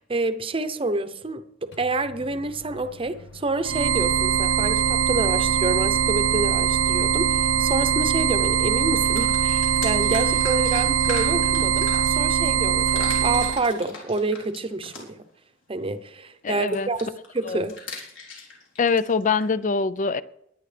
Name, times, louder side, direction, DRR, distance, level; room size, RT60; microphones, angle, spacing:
voice 1, 0.0-15.2 15.7-17.8, right 2 dB, 30° right, 10 dB, 0.8 m, -28 dB
Microwave oven, 1.7-12.1, left 2 dB, 65° left, 1.2 m, -44 dB
sound 1, 3.6-13.6, right 8 dB, 85° right, 0.5 m, -22 dB
sound 2, 8.0-8.1 8.4-12.5 12.8-15.3 16.7-19.5, left 4 dB, 90° left, 3.8 m, -40 dB
voice 2, 16.4-16.9 17.5-17.6 18.8-20.2, left 5 dB, 40° left, 16 dB, 0.5 m, -24 dB
20.5 x 9.8 x 3.4 m, 0.77 s
head